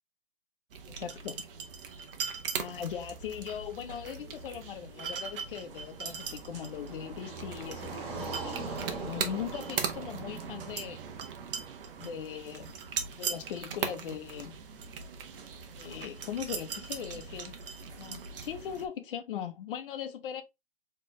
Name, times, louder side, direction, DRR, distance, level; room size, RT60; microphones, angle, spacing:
sound 1, 0.7-18.9, right 6 dB, 60° right, 1.0 m, -39 dB
voice 1, 0.9-1.4 2.5-11.0 12.0-12.8 13.1-14.6 15.8-17.6 18.0-20.4, left 9 dB, 60° left, 0.9 m, -39 dB
Car passing by, 5.2-12.4, right 3 dB, 40° right, 1.2 m, -42 dB
4.1 x 3.3 x 3.1 m
hypercardioid pair, 150°, 31 cm